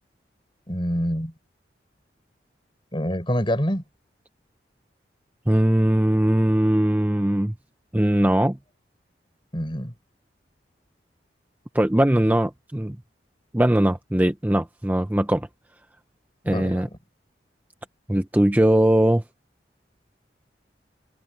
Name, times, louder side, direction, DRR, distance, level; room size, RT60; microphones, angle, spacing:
voice 1, 0.7-1.3 2.9-3.8 9.5-9.9 16.4-17.0, equal, 30° left, 5.1 m, -26 dB
voice 2, 5.5-7.5 7.9-8.6 11.7-13.0 13.5-15.5 16.5-16.9 18.1-19.2, right 1 dB, 10° right, 0.6 m, -20 dB
head